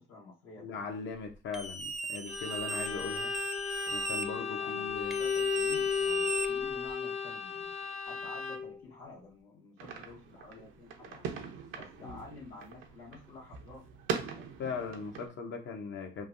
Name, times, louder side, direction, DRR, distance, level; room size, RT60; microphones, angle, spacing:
voice 1, 0.0-0.9 4.6-4.9 5.2-7.7 8.0-11.3 11.7-13.9 14.3-14.8, left 3 dB, 85° left, -5 dB, 1.4 m, -51 dB
voice 2, 0.6-3.3 3.9-5.2 12.0-12.2 14.6-16.3, left 5 dB, 70° left, 5 dB, 0.7 m, -39 dB
sound 1, 1.5-4.2 5.1-6.9, right 3 dB, ahead, 0.4 m, -37 dB
Bowed string instrument, 2.3-8.8, left 6 dB, 35° left, 0.7 m, -34 dB
sound 2, 9.8-15.3, right 6 dB, 90° right, 0.5 m, -41 dB
3.3 x 2.2 x 2.4 m, 0.31 s
cardioid pair, 90°, 20 cm